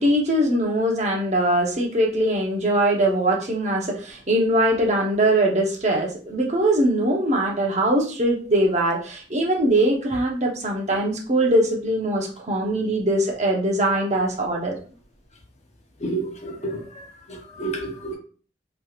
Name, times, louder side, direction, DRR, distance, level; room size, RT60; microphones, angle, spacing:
voice 1, 0.0-14.8, right 1 dB, 40° right, -1 dB, 0.8 m, -21 dB
voice 2, 16.0-18.2, right 2 dB, 40° left, 1 dB, 0.9 m, -31 dB
3.3 x 3.0 x 2.4 m, 0.40 s
head